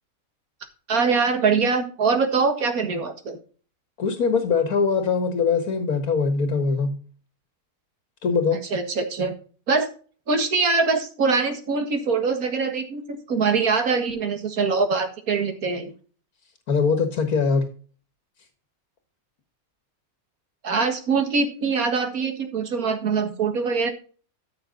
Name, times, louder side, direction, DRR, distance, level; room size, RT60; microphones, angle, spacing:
voice 1, 0.9-3.4 8.7-9.3 9.7-9.9 10.3-15.9 20.6-23.9, right 4 dB, 75° right, 6 dB, 2.2 m, -23 dB
voice 2, 4.0-7.0 8.2-8.6 16.7-17.6, left 5 dB, 75° left, 7 dB, 2.0 m, -22 dB
13.5 x 6.0 x 3.8 m, 0.40 s
omnidirectional pair, 1.5 m